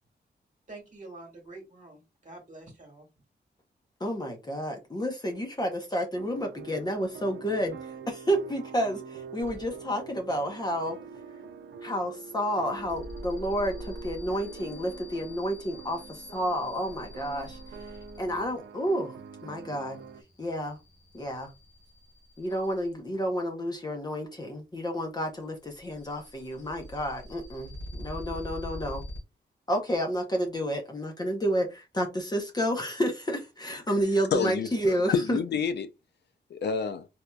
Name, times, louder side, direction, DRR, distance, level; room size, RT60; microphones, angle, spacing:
voice 1, 0.7-3.1, right 2 dB, 45° right, 1.4 m, -47 dB
voice 2, 4.0-7.8 8.1-11.0 11.8-16.0 16.3-17.6 18.2-19.1 19.4-20.0 20.4-20.8 21.1-21.5 22.4-29.0 29.7-35.4, equal, 20° left, 0.7 m, -30 dB
sound 1, 6.1-20.2, right 5 dB, 85° right, 0.5 m, -45 dB
sound 2, 9.4-10.0 10.3-10.8 12.7-23.1 25.1-29.2, left 1 dB, 85° left, 2.2 m, -45 dB
voice 3, 34.3-35.9 36.5-37.1, left 6 dB, 65° left, 0.4 m, -28 dB
4.3 x 2.5 x 2.2 m
wide cardioid pair, 165°, 19 cm